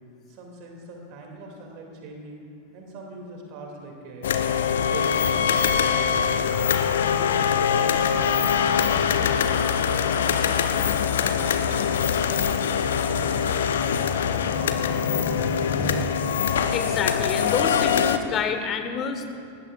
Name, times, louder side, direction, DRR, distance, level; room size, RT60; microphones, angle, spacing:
voice 1, 0.3-2.4 2.7-4.3 4.8-6.7 7.1-8.4 8.9-11.8 12.1-12.7 13.1-14.1 14.4-16.0, right 2 dB, 45° right, 1 dB, 2.5 m, -41 dB
sound 1, 4.2-18.2, left 7 dB, 60° left, 0.7 m, -23 dB
voice 2, 15.1-16.1 16.7-19.3, left 5 dB, 30° left, 7 dB, 1.5 m, -29 dB
23.5 x 19.0 x 2.5 m, 2.5 s
figure-of-eight pair, 90°, 0 cm